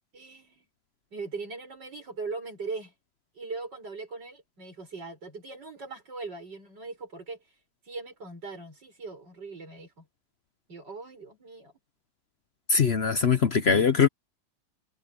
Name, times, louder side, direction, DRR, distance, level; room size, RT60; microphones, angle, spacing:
voice 1, 0.1-0.7 1.1-2.9 3.4-7.4 7.8-10.1 10.7-11.7, right 3 dB, 60° right, 7.3 m, -40 dB
voice 2, 12.7-14.1, left 6 dB, 50° left, 0.8 m, -22 dB
omnidirectional pair, 2.1 m